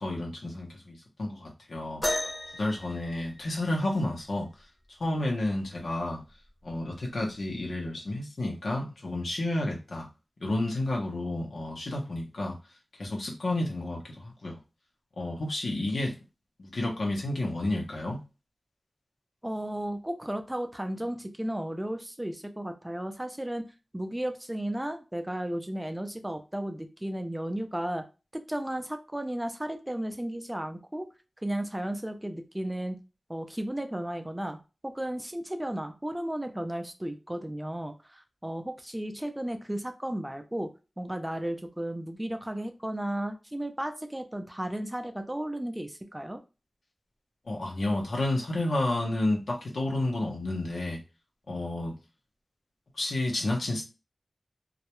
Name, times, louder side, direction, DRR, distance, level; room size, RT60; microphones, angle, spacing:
voice 1, 0.0-2.0 2.5-4.5 5.0-6.2 6.6-10.1 10.4-12.6 13.0-14.6 15.2-16.2 16.6-18.2 47.5-51.0 51.5-51.9 53.0-53.8, left 1 dB, 85° left, 0 dB, 0.7 m, -31 dB
sound 1, 2.0-3.9 5.6-5.7 6.5-6.7 7.6-7.7, left 1 dB, 25° left, 0.8 m, -34 dB
voice 2, 19.4-28.0 28.3-31.1 31.4-33.0 33.3-34.6 34.8-40.7 41.0-46.4, right 1 dB, 10° right, 6 dB, 0.4 m, -34 dB
2.3 x 2.1 x 2.9 m, 0.30 s
wide cardioid pair, 85°, 0 cm